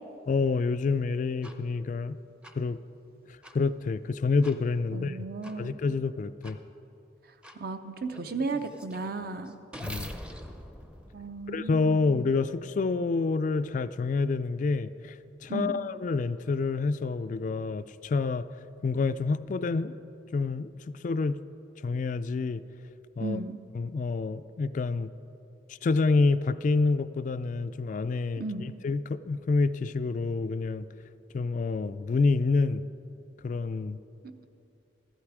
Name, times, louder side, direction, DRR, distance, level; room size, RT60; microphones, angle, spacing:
voice 1, 0.3-2.2 2.6-2.8 3.5-5.2 5.6-6.6 9.8-10.1 11.5-18.5 18.8-19.9 20.3-21.4 21.8-22.6 23.2-23.4 23.7-25.1 25.7-30.9 31.3-32.8 33.4-34.0, left 4 dB, 45° left, 13 dB, 0.3 m, -28 dB
sound 1, 1.4-1.5 2.4-2.5 3.4-3.5 4.4-4.6 5.4-5.5 6.4-6.5 7.4-7.6 8.1-12.0, equal, 5° right, 0.6 m, -44 dB
voice 2, 4.9-5.7 7.5-9.6 11.1-12.1 15.5-15.8 23.2-23.6 28.4-28.7, right 3 dB, 55° right, 8 dB, 0.7 m, -35 dB
14.5 x 12.0 x 4.8 m, 2.8 s
head